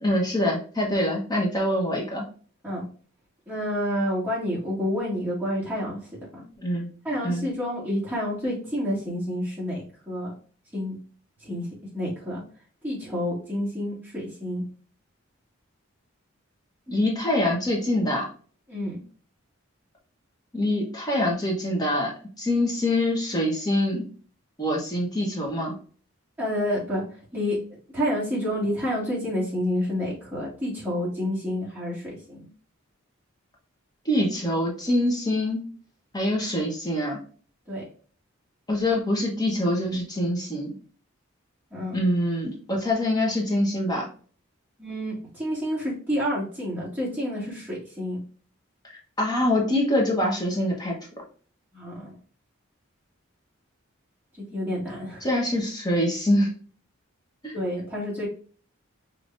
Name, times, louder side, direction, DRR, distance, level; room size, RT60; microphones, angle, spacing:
voice 1, 0.0-2.3 6.6-6.9 7.2-7.5 16.9-18.3 20.5-22.1 22.4-24.1 24.6-25.7 34.0-35.7 36.1-37.2 38.7-40.8 41.9-44.0 49.2-51.0 55.2-56.5 57.4-57.6, left 1 dB, 20° left, -2 dB, 1.1 m, -24 dB
voice 2, 3.5-6.0 6.3-6.4 7.0-10.3 10.7-11.0 11.4-11.7 11.9-12.4 12.8-14.6 18.7-19.0 26.4-27.6 27.9-32.5 37.7-37.8 41.7-42.0 44.8-48.2 51.7-52.1 54.5-55.3 57.5-58.3, equal, 10° right, -8 dB, 2.1 m, -29 dB
5.3 x 2.9 x 2.6 m, 0.41 s
head